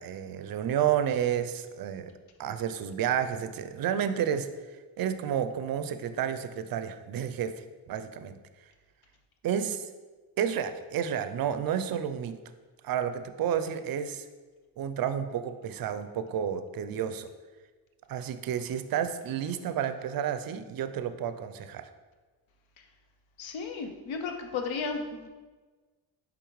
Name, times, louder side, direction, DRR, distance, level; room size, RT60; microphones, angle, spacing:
voice 1, 0.0-2.1 2.4-4.5 5.0-7.5 7.9-8.4 9.4-9.9 10.4-12.4 12.8-14.2 14.8-17.3 18.1-21.8, right 9 dB, 50° right, 10 dB, 0.5 m, -30 dB
voice 2, 23.4-25.3, left 4 dB, 75° left, 4 dB, 0.7 m, -34 dB
4.9 x 3.5 x 3.0 m, 1.3 s
supercardioid pair, 55°, 48 cm